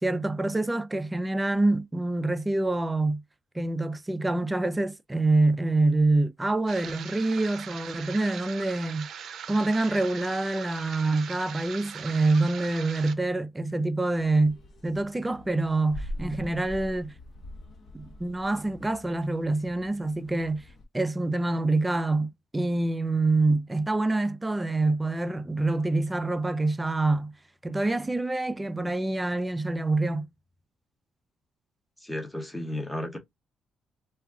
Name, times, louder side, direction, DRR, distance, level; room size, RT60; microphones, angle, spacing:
voice 1, 0.0-3.2 3.5-9.1 9.5-14.6 14.8-17.1 17.9-20.6 20.9-27.3 27.6-30.3, right 2 dB, 15° right, 0.4 m, -26 dB
sound 1, 6.7-13.1, right 8 dB, 70° right, 0.5 m, -41 dB
sound 2, 14.2-20.8, left 1 dB, 60° left, 1.0 m, -43 dB
voice 2, 32.0-33.2, left 1 dB, 10° left, 0.9 m, -33 dB
2.3 x 2.3 x 3.5 m
cardioid pair, 90°, 0 cm